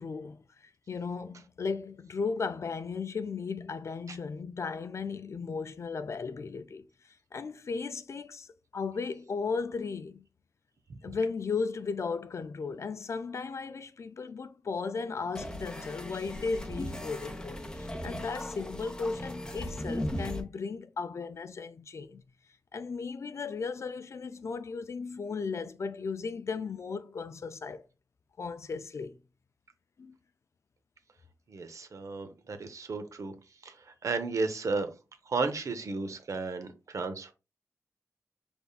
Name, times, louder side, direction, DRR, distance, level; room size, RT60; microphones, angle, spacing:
voice 1, 0.0-10.2 11.0-22.2 22.7-27.8 28.4-29.2 30.0-30.2, left 4 dB, 55° left, 0.4 m, -36 dB
sound 1, 15.3-20.4, left 1 dB, 15° left, 0.8 m, -37 dB
voice 2, 31.5-33.3 33.6-34.9 35.3-37.3, right 4 dB, 65° right, 0.7 m, -33 dB
5.3 x 3.4 x 2.4 m
wide cardioid pair, 120°, 6 cm